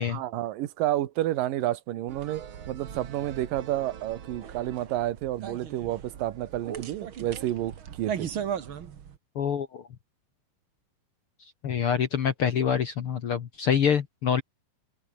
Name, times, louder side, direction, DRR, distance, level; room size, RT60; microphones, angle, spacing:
voice 1, 0.1-8.3, right 14 dB, 70° right, 2.9 m, -30 dB
sound 1, 2.1-9.2, right 8 dB, 50° right, 1.7 m, -38 dB
voice 2, 9.3-9.9 11.6-14.4, left 7 dB, 60° left, 1.5 m, -26 dB
open air
omnidirectional pair, 4.2 m